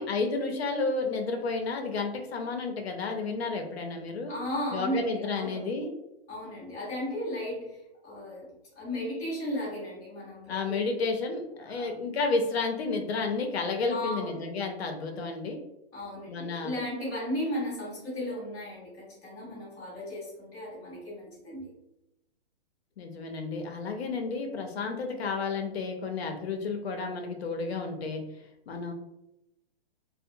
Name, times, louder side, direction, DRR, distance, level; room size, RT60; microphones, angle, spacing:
voice 1, 0.0-4.3 4.7-5.9 10.5-15.6 16.3-16.7 23.0-28.2 28.7-28.9, left 4 dB, 75° left, 4 dB, 0.6 m, -31 dB
voice 2, 4.3-5.6 6.3-7.8 8.0-8.4 8.8-11.0 11.7-11.9 13.9-14.4 15.9-21.7, equal, 10° left, -12 dB, 0.7 m, -35 dB
2.7 x 2.0 x 2.5 m, 0.90 s
hypercardioid pair, 175°, 31 cm